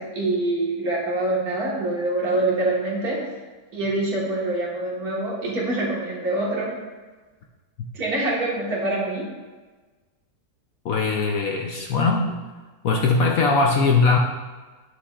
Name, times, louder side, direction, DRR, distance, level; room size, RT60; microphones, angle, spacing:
voice 1, 0.0-3.2 3.7-6.7 7.9-9.3, right 2 dB, 60° right, -4 dB, 2.1 m, -25 dB
voice 2, 10.8-12.4 12.8-14.2, left 4 dB, 65° left, 1 dB, 0.9 m, -20 dB
9.8 x 6.0 x 2.4 m, 1.3 s
omnidirectional pair, 1.9 m